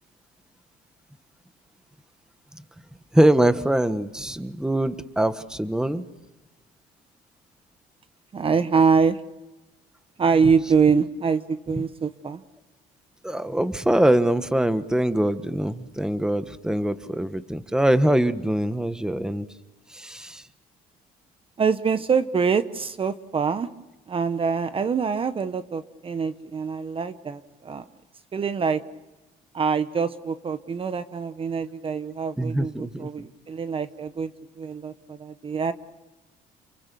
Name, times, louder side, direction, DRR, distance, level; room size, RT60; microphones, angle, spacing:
voice 1, 3.1-6.0 13.2-19.5 19.9-20.4 32.4-33.3, right 1 dB, 5° right, 11 dB, 1.3 m, -23 dB
voice 2, 8.3-9.2 10.2-12.4 21.6-23.7 24.1-27.8 28.3-28.8 29.5-35.7, right 5 dB, 35° right, 12 dB, 1.0 m, -24 dB
29.0 x 23.0 x 7.0 m, 1.1 s
cardioid pair, 110°, 17 cm